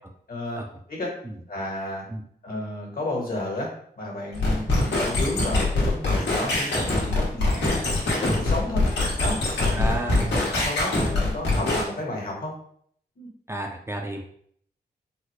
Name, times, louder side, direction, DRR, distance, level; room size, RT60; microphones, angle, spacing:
voice 1, 0.3-0.6 0.9-1.2 1.5-2.0 2.4-8.9 9.2-12.5 13.2-13.3, left 1 dB, 60° left, -2 dB, 1.3 m, -32 dB
sound 1, 4.3-11.8, left 2 dB, 90° left, 1.1 m, -24 dB
voice 2, 9.7-10.5 13.5-14.2, right 1 dB, 15° right, 1 dB, 0.4 m, -31 dB
3.9 x 2.1 x 3.1 m, 0.64 s
wide cardioid pair, 95°, 17 cm